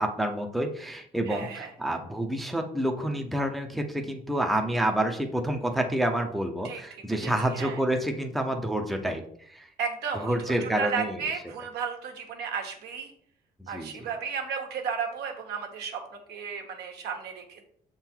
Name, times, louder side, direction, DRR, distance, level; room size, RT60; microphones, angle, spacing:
voice 1, 0.0-9.7 10.1-11.2 13.7-14.1, right 1 dB, ahead, 3 dB, 0.7 m, -28 dB
voice 2, 1.3-1.7 6.6-7.8 9.8-13.1 13.7-17.6, right 6 dB, 75° right, 3 dB, 1.4 m, -34 dB
6.6 x 3.9 x 4.5 m, 0.65 s
cardioid pair, 110°, 17 cm